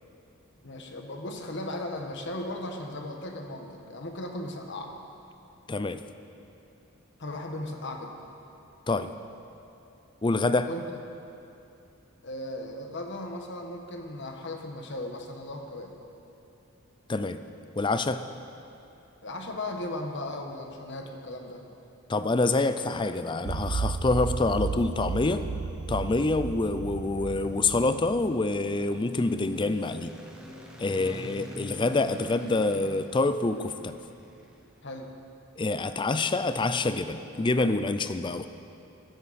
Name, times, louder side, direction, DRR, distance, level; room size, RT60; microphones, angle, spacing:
voice 1, 0.6-4.9 7.2-8.1 10.7-10.9 12.2-15.9 19.2-21.6 30.9-31.2 34.8-35.1, left 1 dB, 55° left, 3 dB, 1.3 m, -37 dB
voice 2, 5.7-6.0 8.9-9.1 10.2-10.7 17.1-17.4 17.8-18.2 22.1-25.4 25.9-30.2 30.8-34.0 35.6-38.5, left 3 dB, 20° left, 11 dB, 0.4 m, -26 dB
sound 1, 23.5-28.4, right 4 dB, 50° right, 0.5 m, -33 dB
sound 2, 26.8-35.0, right 1 dB, 5° right, 1.2 m, -47 dB
15.0 x 13.5 x 4.2 m, 2.7 s
head